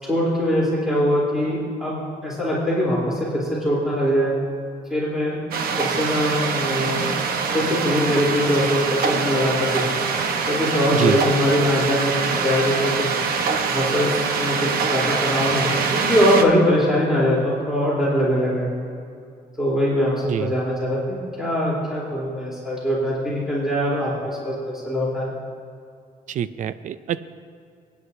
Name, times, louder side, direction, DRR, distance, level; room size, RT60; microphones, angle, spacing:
voice 1, 0.0-4.3 4.9-5.4 5.8-7.0 7.5-9.9 10.5-13.1 13.7-18.7 19.6-25.3, equal, 5° right, -7 dB, 3.5 m, -22 dB
sound 1, 5.5-16.4, right 5 dB, 75° right, 1.1 m, -24 dB
voice 2, 26.3-27.2, right 9 dB, 55° right, 14 dB, 0.5 m, -25 dB
27.0 x 9.7 x 2.7 m, 2.4 s
cardioid pair, 150°, 15 cm